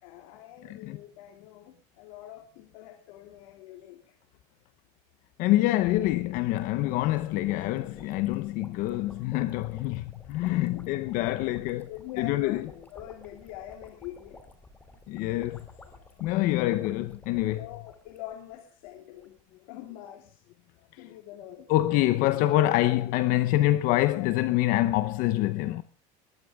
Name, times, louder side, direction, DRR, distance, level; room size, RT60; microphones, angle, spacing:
voice 1, 0.0-4.2 10.4-10.5 11.9-12.6 12.9-14.4 17.5-19.4 19.7-20.4 21.0-21.7, left 12 dB, 80° left, 2.7 m, -44 dB
voice 2, 0.6-1.0 5.4-11.9 12.2-12.7 15.1-15.6 16.2-17.6 21.7-25.8, left 16 dB, 55° left, 0.8 m, -26 dB
sound 1, 5.8-18.6 18.9-19.0 19.2-19.4, left 2 dB, 10° left, 2.5 m, -53 dB
20.5 x 14.0 x 3.5 m
cardioid pair, 155°, 17 cm